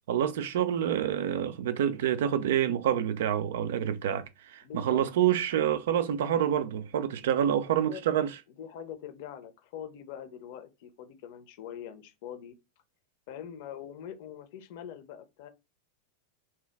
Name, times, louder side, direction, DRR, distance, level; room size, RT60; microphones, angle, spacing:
voice 1, 0.1-8.4, right 10 dB, 55° right, 0.3 m, -27 dB
voice 2, 4.6-5.0 7.7-8.0 8.6-12.5 13.3-15.5, left 9 dB, 50° left, 0.7 m, -43 dB
2.7 x 2.3 x 3.3 m
figure-of-eight pair, 90°, 0 cm